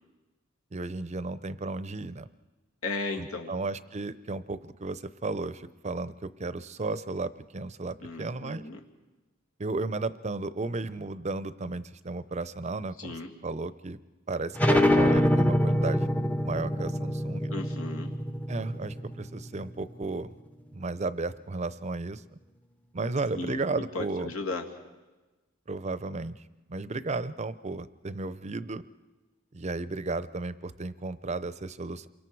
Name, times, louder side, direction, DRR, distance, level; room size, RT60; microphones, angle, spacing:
voice 1, 0.7-2.3 3.2-8.7 9.6-13.1 13.4-14.0 14.3-16.1 16.4-17.5 18.5-20.3 20.7-22.4 22.9-24.3 25.7-26.4 26.7-28.8 29.5-32.1, right 3 dB, 35° right, 15 dB, 0.6 m, -34 dB
voice 2, 2.8-3.5 8.0-8.8 13.0-13.3 17.5-18.1 23.4-24.6, left 3 dB, 90° left, 2 dB, 2.3 m, -35 dB
sound 1, 14.6-19.8, left 1 dB, 5° left, 0.6 m, -25 dB
27.5 x 24.0 x 4.7 m, 1.2 s
head